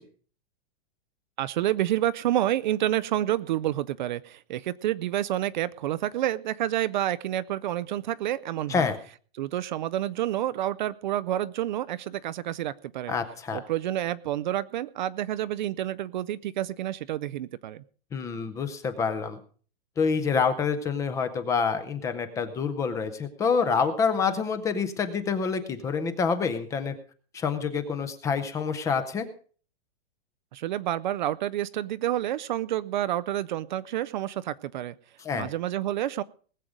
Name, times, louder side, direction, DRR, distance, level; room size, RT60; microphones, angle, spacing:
voice 1, 1.4-8.9 9.4-13.1 13.5-17.8 30.5-34.9 35.3-36.2, right 13 dB, 50° right, 15 dB, 0.5 m, -29 dB
voice 2, 13.1-13.6 18.1-19.4 20.0-26.9 27.3-29.3 35.2-35.5, left 5 dB, 10° left, 10 dB, 0.6 m, -27 dB
19.5 x 7.6 x 5.0 m, 0.42 s
supercardioid pair, 165°, 31 cm